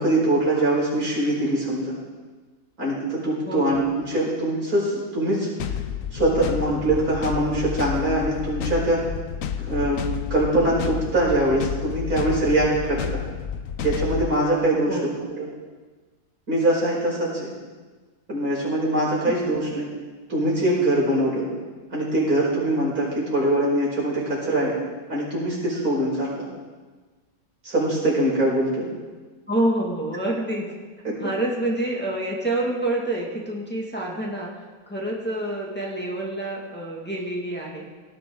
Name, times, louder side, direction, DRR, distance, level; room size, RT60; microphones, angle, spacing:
voice 1, 0.0-2.0 2.8-5.5 6.1-9.0 9.6-10.0 10.3-13.2 13.8-15.5 16.5-17.5 18.3-19.9 20.3-21.5 21.9-24.8 25.1-26.5 27.6-28.9 31.0-31.1, right 1 dB, 90° right, -6 dB, 5.6 m, -23 dB
voice 2, 3.5-3.8 14.9-15.2 29.5-30.7 31.2-37.9, right 1 dB, 5° left, -3 dB, 2.1 m, -27 dB
sound 1, 5.6-14.4, left 8 dB, 65° left, 1.1 m, -30 dB
18.0 x 13.5 x 3.9 m, 1.4 s
omnidirectional pair, 1.5 m